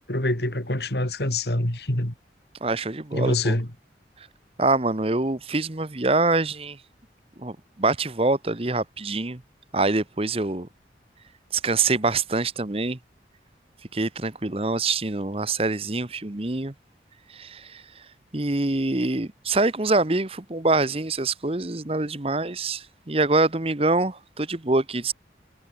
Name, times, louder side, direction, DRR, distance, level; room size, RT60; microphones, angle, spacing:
voice 1, 0.1-2.1 3.1-3.7, left 1 dB, 70° left, 3.8 m, -25 dB
voice 2, 2.6-3.5 4.6-6.8 7.4-9.4 9.7-10.7 11.5-13.0 13.9-16.7 17.3-17.8 18.3-25.1, right 3 dB, 35° right, 1.1 m, -25 dB
head